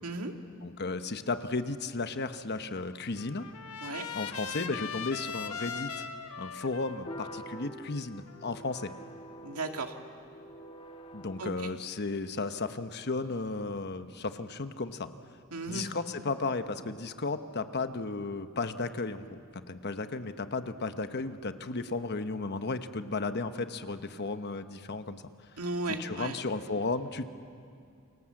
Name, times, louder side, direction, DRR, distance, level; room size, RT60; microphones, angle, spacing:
voice 1, 0.0-0.3 3.8-4.1 9.4-9.9 11.4-11.7 15.5-15.9 25.6-26.4, right 3 dB, 85° right, 4 dB, 2.1 m, -35 dB
voice 2, 0.6-3.5 4.1-6.0 6.4-8.9 11.1-15.1 15.7-25.2 26.0-27.3, left 3 dB, 50° left, 9 dB, 1.1 m, -34 dB
Trumpet, 2.7-8.9, left 6 dB, 90° left, 1.3 m, -41 dB
sound 1, 7.0-11.4, equal, 25° left, 1.7 m, -46 dB
28.5 x 24.5 x 7.8 m, 2.4 s
head